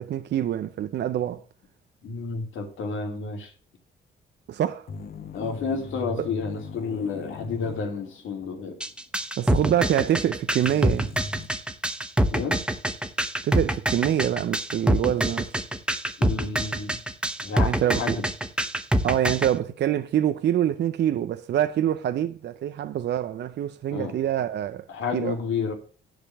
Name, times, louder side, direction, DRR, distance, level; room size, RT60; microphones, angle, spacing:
voice 1, 0.0-1.4 4.5-4.9 6.2-6.3 9.4-11.1 13.4-15.5 17.6-18.2 19.0-24.9 25.1-25.4, right 11 dB, 60° right, 0.6 m, -25 dB
voice 2, 2.0-3.5 5.3-8.8 12.3-12.6 16.2-17.0 17.4-18.3 23.9-24.2 24.9-25.7, left 5 dB, 75° left, 2.9 m, -31 dB
sound 1, 4.9-8.6 8.9-9.0 10.6-11.5, left 3 dB, 50° left, 1.2 m, -39 dB
sound 2, 8.8-19.5, right 1 dB, 5° right, 0.9 m, -25 dB
10.0 x 5.1 x 7.1 m
cardioid pair, 90°, 20 cm